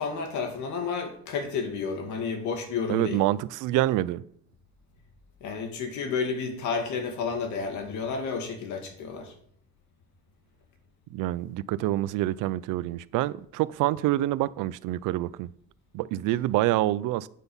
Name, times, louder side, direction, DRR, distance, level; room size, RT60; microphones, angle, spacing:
voice 1, 0.0-3.2 5.4-9.3, left 5 dB, 70° left, 2.5 m, -31 dB
voice 2, 2.9-4.2 11.1-15.5 15.9-17.3, right 15 dB, 85° right, 0.6 m, -26 dB
9.3 x 8.0 x 5.6 m
cardioid pair, 180°, 31 cm